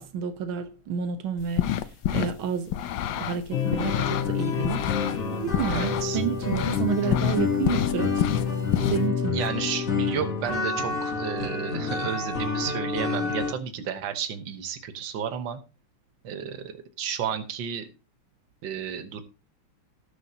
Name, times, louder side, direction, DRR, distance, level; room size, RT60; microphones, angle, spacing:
voice 1, 0.0-2.8 3.2-4.9 5.3-8.3 8.9-9.4, right 7 dB, 90° right, 1.7 m, -30 dB
sound 1, 1.4-2.3 2.7-4.3 4.6-6.1 6.5-6.8 7.1-9.0, left 11 dB, 70° left, 1.3 m, -27 dB
sound 2, 3.5-13.5, left 5 dB, 45° left, 1.6 m, -28 dB
voice 2, 5.7-6.2 7.0-7.1 9.3-15.6 16.2-17.9 18.6-19.2, right 8 dB, 70° right, 1.8 m, -32 dB
18.5 x 6.7 x 2.8 m
omnidirectional pair, 2.2 m